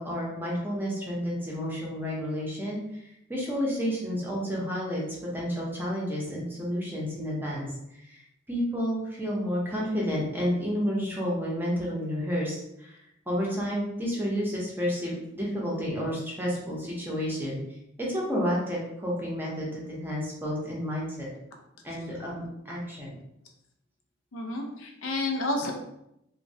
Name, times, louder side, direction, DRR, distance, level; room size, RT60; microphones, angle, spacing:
voice 1, 0.0-5.0 5.3-7.7 7.9-13.0 13.3-17.6 18.0-21.3 21.8-23.2, equal, 10° right, -4 dB, 0.6 m, -31 dB
voice 2, 24.3-25.7, left 2 dB, 85° left, 2 dB, 0.5 m, -30 dB
3.0 x 2.1 x 2.6 m, 0.82 s
head